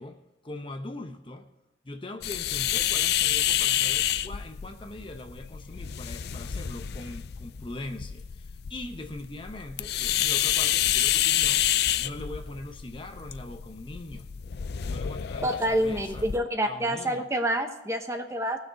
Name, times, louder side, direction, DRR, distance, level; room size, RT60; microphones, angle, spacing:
voice 1, 0.0-1.5 1.8-14.3 14.8-16.3 16.6-17.2, left 2 dB, 25° left, 6 dB, 0.7 m, -41 dB
sound 1, 2.2-16.4, left 11 dB, 55° left, 0.4 m, -28 dB
voice 2, 15.4-18.6, right 1 dB, 15° right, 5 dB, 0.9 m, -27 dB
18.5 x 6.4 x 4.0 m, 1.0 s
head